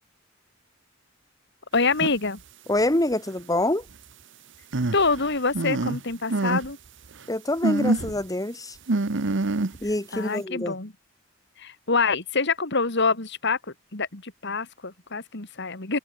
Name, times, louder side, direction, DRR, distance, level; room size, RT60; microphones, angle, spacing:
voice 1, 1.7-2.4 4.9-6.8 10.1-10.9 11.6-13.6 13.9-16.0, left 4 dB, 60° left, 2.6 m, -26 dB
sound 1, 1.9-2.1 2.8-2.9 4.7-6.0 6.3-6.7 7.1-7.2 7.6-8.2 8.9-9.9, right 2 dB, 65° right, 1.0 m, -26 dB
voice 2, 2.7-3.8 7.3-8.8 9.8-10.8, left 1 dB, 20° left, 1.8 m, -25 dB
head